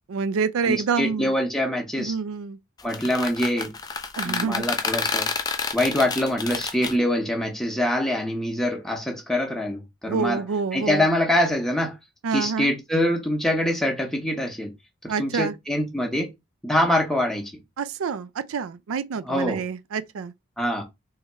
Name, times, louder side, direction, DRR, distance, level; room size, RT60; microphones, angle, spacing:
voice 1, 0.1-1.3 2.0-2.6 4.2-4.7 10.1-11.1 12.2-12.7 15.1-15.6 17.8-20.3, right 5 dB, 85° right, 0.4 m, -27 dB
voice 2, 0.6-2.1 2.8-3.7 4.2-5.3 5.7-10.4 10.7-12.0 12.3-14.7 15.2-16.3 16.6-17.5 19.2-19.6 20.6-20.8, left 1 dB, ahead, 0.9 m, -24 dB
sound 1, 2.8-6.9, left 4 dB, 20° left, 0.4 m, -29 dB
3.4 x 3.3 x 3.1 m
head